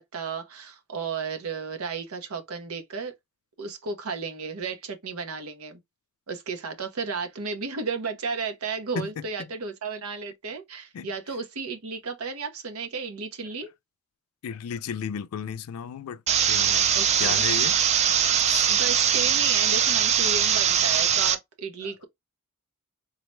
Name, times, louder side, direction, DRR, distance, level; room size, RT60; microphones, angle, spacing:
voice 1, 0.0-3.1 3.6-5.8 6.3-13.7 16.9-17.4 18.7-22.0, right 5 dB, 85° right, 0.8 m, -33 dB
voice 2, 14.4-16.9 17.2-17.8 18.5-18.7 21.8-21.9, left 7 dB, 85° left, 0.3 m, -34 dB
sound 1, 16.3-21.3, right 9 dB, 30° right, 0.3 m, -22 dB
3.9 x 2.1 x 3.1 m
head